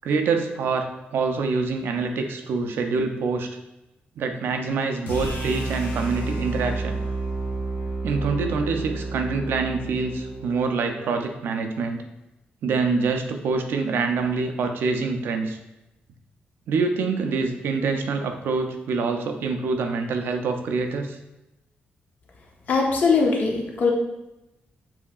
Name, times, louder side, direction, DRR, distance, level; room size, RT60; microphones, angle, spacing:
voice 1, 0.0-3.5 4.2-7.0 8.0-12.0 12.6-15.6 16.7-21.2, right 4 dB, 90° right, 5 dB, 0.5 m, -25 dB
sound 1, 5.1-11.2, right 2 dB, 85° left, 1.0 m, -30 dB
voice 2, 22.7-23.9, left 4 dB, 50° left, 0 dB, 0.8 m, -21 dB
6.9 x 2.8 x 2.4 m, 0.94 s
wide cardioid pair, 165°, 4 cm